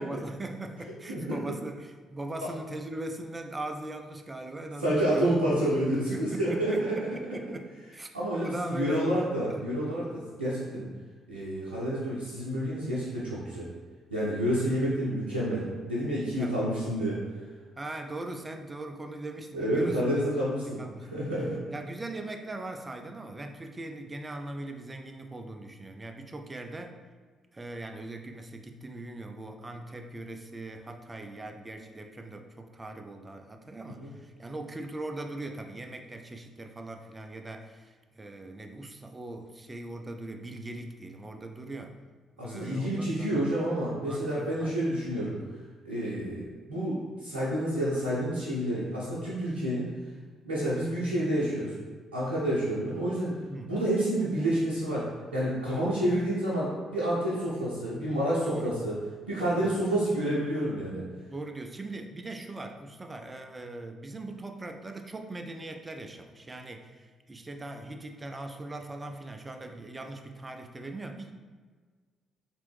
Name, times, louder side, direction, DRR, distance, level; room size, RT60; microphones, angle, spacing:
voice 1, 0.0-5.4 5.9-7.7 7.9-8.1 8.4-9.1 9.5-9.7 16.3-16.7 17.8-20.3 20.6-21.3 21.7-27.0 27.5-42.0 42.4-43.5 44.1-44.7 45.1-45.3 53.5-53.7 55.7-56.0 58.4-58.8 59.4-59.8 61.3-71.3, right 2 dB, 20° right, 5 dB, 0.4 m, -40 dB
voice 2, 4.8-7.1 8.1-10.9 11.3-13.7 14.1-17.2 19.5-20.8 21.1-21.6 33.8-34.1 42.4-45.4 45.8-49.9 50.4-51.7 52.1-53.3 53.7-55.1 55.3-59.0 59.3-61.0, right 1 dB, 80° right, -10 dB, 0.6 m, -29 dB
3.4 x 3.0 x 3.2 m, 1.5 s
figure-of-eight pair, 45°, 0 cm